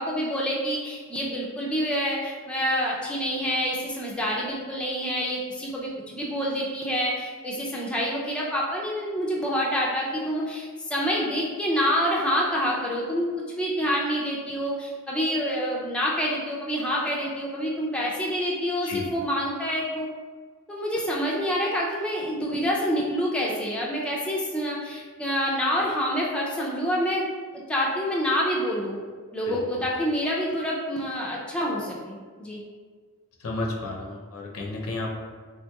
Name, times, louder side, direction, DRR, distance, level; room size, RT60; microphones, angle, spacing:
voice 1, 0.0-13.3 13.6-20.1 20.7-27.3 27.7-29.0 29.3-32.6, equal, 5° left, -5 dB, 0.4 m, -27 dB
voice 2, 33.4-35.1, left 2 dB, 65° left, -1 dB, 0.5 m, -32 dB
3.4 x 2.8 x 2.2 m, 1.5 s
head